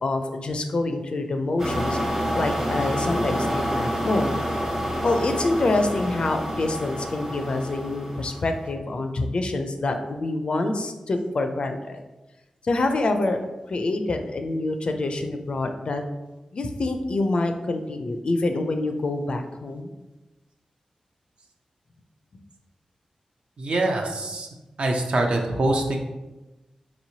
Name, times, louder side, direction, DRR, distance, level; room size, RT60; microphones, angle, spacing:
voice 1, 0.0-2.0 2.3-4.3 5.0-12.0 12.6-13.4 13.7-16.0 16.5-19.9, left 2 dB, 55° left, 6 dB, 0.4 m, -26 dB
sound 1, 1.6-8.6, equal, 25° right, 0.8 m, -28 dB
voice 2, 23.6-24.5 24.8-26.0, right 2 dB, 65° right, 2 dB, 0.6 m, -24 dB
4.3 x 3.0 x 2.7 m, 1.1 s
wide cardioid pair, 105°, 2 cm